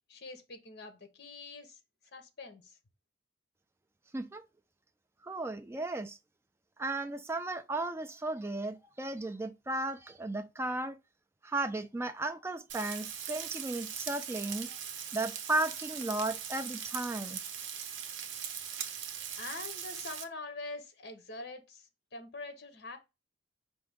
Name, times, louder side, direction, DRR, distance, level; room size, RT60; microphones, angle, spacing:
voice 1, 0.1-1.8 2.1-2.8 19.4-23.0, left 3 dB, 55° left, 1.0 m, -44 dB
voice 2, 5.2-6.2 6.8-11.0 11.4-14.7 15.1-17.4, right 2 dB, 15° right, 0.3 m, -35 dB
Frying (food), 12.7-20.2, right 8 dB, 75° right, 0.7 m, -40 dB
4.7 x 2.6 x 3.5 m
head